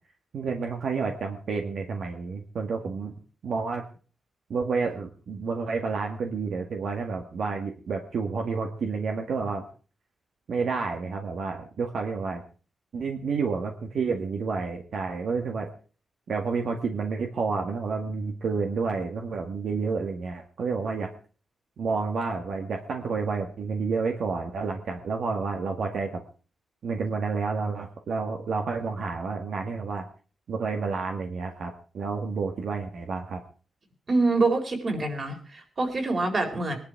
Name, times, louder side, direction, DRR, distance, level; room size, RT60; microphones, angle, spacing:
voice 1, 0.3-3.1 3.4-3.8 4.5-9.7 10.5-12.4 12.9-15.7 16.3-21.1 21.8-26.2 26.8-30.1 30.5-33.4, right 4 dB, 65° right, 3 dB, 1.9 m, -30 dB
voice 2, 34.1-36.8, right 3 dB, 40° right, 4 dB, 4.2 m, -25 dB
20.5 x 11.5 x 4.7 m, 0.40 s
wide cardioid pair, 120°, 0 cm